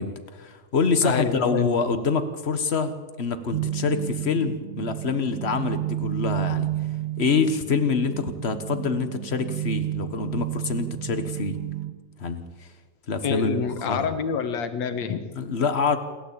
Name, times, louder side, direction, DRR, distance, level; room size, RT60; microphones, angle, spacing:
voice 1, 0.0-6.7 7.2-11.6 12.2-12.7 13.1-14.1 15.3-16.0, left 4 dB, 50° left, 9 dB, 0.7 m, -26 dB
voice 2, 1.0-1.7 13.2-15.2, left 6 dB, 70° left, 9 dB, 2.7 m, -27 dB
sound 1, 3.5-11.9, right 15 dB, 70° right, 2.4 m, -31 dB
27.5 x 13.0 x 8.7 m, 1.4 s
omnidirectional pair, 3.3 m